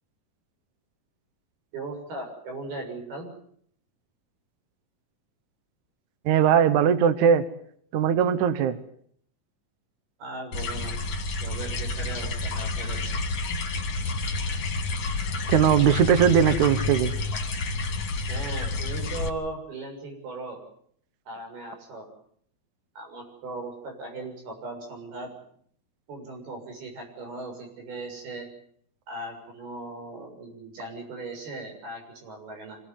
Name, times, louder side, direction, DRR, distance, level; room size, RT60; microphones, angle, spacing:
voice 1, 1.7-3.3 10.2-11.0 11.4-13.2 18.3-20.6 21.3-22.1 23.0-25.3 26.1-28.5 29.1-32.8, right 2 dB, 85° right, 3 dB, 8.9 m, -38 dB
voice 2, 6.3-7.4 7.9-8.8 15.5-17.1, right 8 dB, 65° right, 12 dB, 2.3 m, -20 dB
sound 1, 10.5-19.3, left 3 dB, 45° left, 2.9 m, -29 dB
25.5 x 18.5 x 9.7 m, 0.65 s
omnidirectional pair, 4.3 m